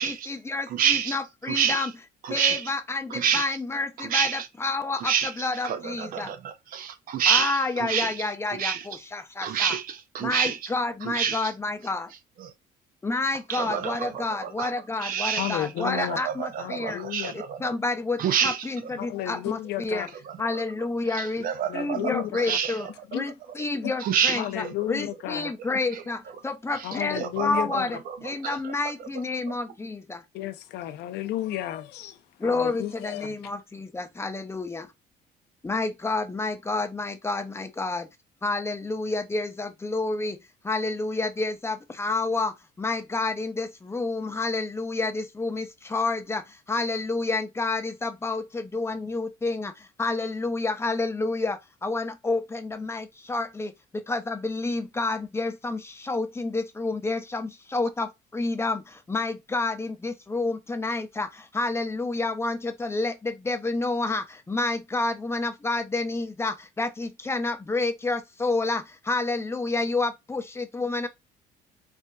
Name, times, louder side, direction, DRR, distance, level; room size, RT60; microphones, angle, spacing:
voice 1, 0.0-1.9 2.3-6.3 7.3-9.8 10.2-12.1 13.0-17.0 17.3-20.1 20.4-30.2 32.4-34.9 35.6-38.1 38.4-40.4 40.6-71.1, left 3 dB, 15° left, 0.6 m, -29 dB
voice 2, 0.7-1.2 1.5-1.9 2.2-2.7 3.1-3.5 4.0-4.5 5.0-9.0 9.4-10.7 11.0-11.5 12.4-12.5 13.5-14.7 15.0-17.7 18.2-18.7 19.0-19.1 20.3-20.6 21.1-22.9 24.0-24.7 25.9-26.0 26.7-28.7, right 8 dB, 55° right, 0.6 m, -28 dB
voice 3, 15.4-16.2 16.6-17.3 19.0-20.1 21.7-22.6 23.1-23.3 23.8-23.9 24.3-25.5 26.8-28.0 30.3-33.5, left 13 dB, 80° left, 0.6 m, -33 dB
4.4 x 2.5 x 2.3 m
cardioid pair, 110°, 17 cm